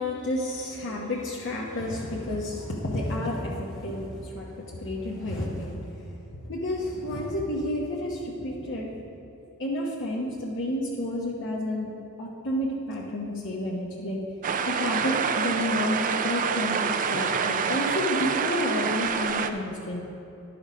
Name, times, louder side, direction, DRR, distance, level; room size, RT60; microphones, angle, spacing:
voice 1, 0.0-6.0 6.4-9.0 9.6-11.9 12.2-14.2 14.7-20.0, left 1 dB, 55° left, -4 dB, 1.1 m, -30 dB
sound 1, 14.4-19.5, right 6 dB, 35° right, 0.4 m, -27 dB
11.0 x 6.3 x 5.1 m, 2.8 s
head